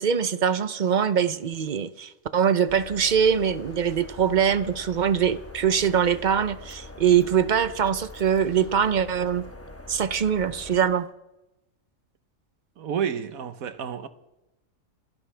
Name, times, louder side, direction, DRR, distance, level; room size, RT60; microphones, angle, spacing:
voice 1, 0.0-9.4 9.9-11.1, right 8 dB, 50° right, 0.6 m, -23 dB
sound 1, 2.7-10.8, left 2 dB, 10° left, 0.9 m, -43 dB
voice 2, 12.8-14.1, right 7 dB, 85° right, 1.4 m, -30 dB
27.5 x 11.5 x 3.4 m
omnidirectional pair, 1.4 m